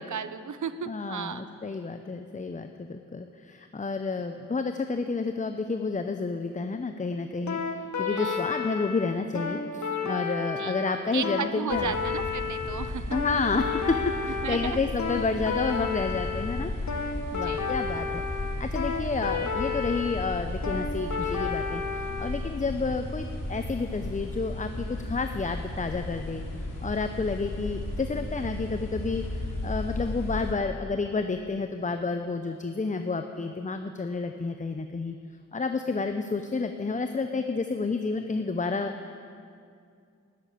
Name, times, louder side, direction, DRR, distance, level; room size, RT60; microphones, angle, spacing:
voice 1, 0.1-1.5 8.1-8.4 10.6-10.7 11.1-13.0 14.4-14.8 17.3-17.7, right 7 dB, 70° right, 12 dB, 0.7 m, -35 dB
voice 2, 0.9-11.9 13.1-16.7 17.0-18.2 18.6-26.4 26.8-35.2 35.5-38.9, left 4 dB, 25° left, 7 dB, 0.6 m, -30 dB
sound 1, 7.5-22.3, left 5 dB, 65° left, 1.2 m, -31 dB
sound 2, 11.7-30.5, left 1 dB, 90° left, 2.3 m, -35 dB
12.5 x 7.3 x 8.7 m, 2.3 s
cardioid pair, 50°, 32 cm